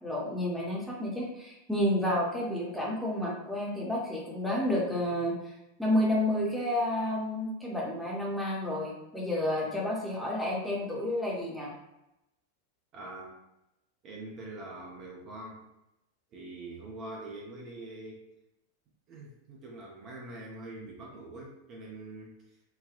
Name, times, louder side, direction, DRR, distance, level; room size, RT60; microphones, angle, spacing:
voice 1, 0.0-5.4 5.8-11.7, left 1 dB, ahead, -5 dB, 0.8 m, -30 dB
voice 2, 12.9-13.3 14.0-15.6 16.3-18.3 19.1-22.4, right 2 dB, 35° right, -2 dB, 0.6 m, -44 dB
3.4 x 2.2 x 2.4 m, 0.89 s
figure-of-eight pair, 90°, 0 cm